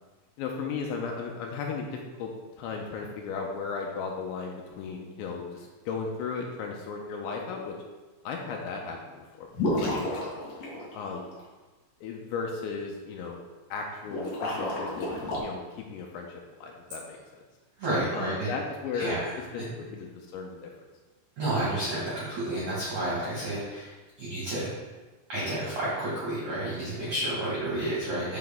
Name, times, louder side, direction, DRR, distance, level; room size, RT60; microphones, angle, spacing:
voice 1, 0.4-7.8 8.2-9.5 9.8-10.3 10.7-11.3 12.0-13.4 13.7-15.6 15.9-17.2 18.1-19.2 19.5-19.7 19.9-20.7, left 5 dB, 90° left, 1 dB, 2.6 m, -35 dB
sound 1, 9.5-11.4 14.0-15.4, left 1 dB, 65° left, 2.1 m, -31 dB
voice 2, 17.8-18.6 18.9-19.7 21.4-24.7 25.3-28.4, right 1 dB, 60° right, -8 dB, 2.0 m, -31 dB
7.8 x 5.2 x 3.6 m, 1.3 s
omnidirectional pair, 6.0 m